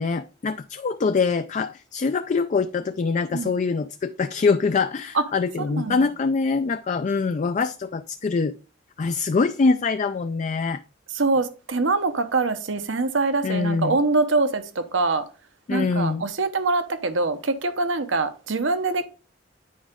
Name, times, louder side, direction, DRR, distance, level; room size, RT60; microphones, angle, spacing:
voice 1, 0.0-8.5 9.0-10.8 13.4-14.0 15.7-16.2, left 4 dB, 40° left, 0.4 m, -24 dB
voice 2, 5.8-6.1 11.1-15.3 15.7-19.1, right 3 dB, 75° right, 1.0 m, -24 dB
9.3 x 4.9 x 3.6 m
head